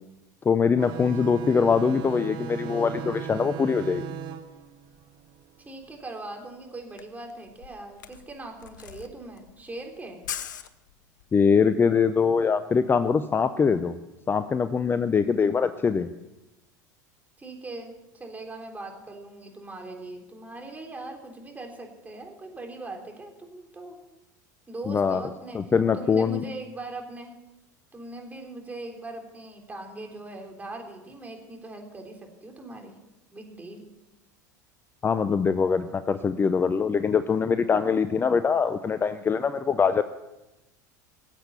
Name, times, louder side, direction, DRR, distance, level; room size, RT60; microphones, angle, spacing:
voice 1, 0.4-4.0 11.3-14.0 14.3-16.1 24.9-25.2 25.5-26.4 35.0-40.0, left 6 dB, 20° left, 11 dB, 0.6 m, -23 dB
sound 1, 0.8-5.9, right 8 dB, 50° right, 1.3 m, -37 dB
voice 2, 5.6-10.2 17.4-24.0 24.7-25.6 25.9-27.3 27.9-32.9 33.3-33.9, right 2 dB, 15° right, 2 dB, 3.6 m, -40 dB
Camera, 6.6-6.7 6.8-11.3, left 9 dB, 85° left, 0.9 m, -40 dB
18.0 x 8.0 x 7.0 m, 0.98 s
hypercardioid pair, 90°, 10 cm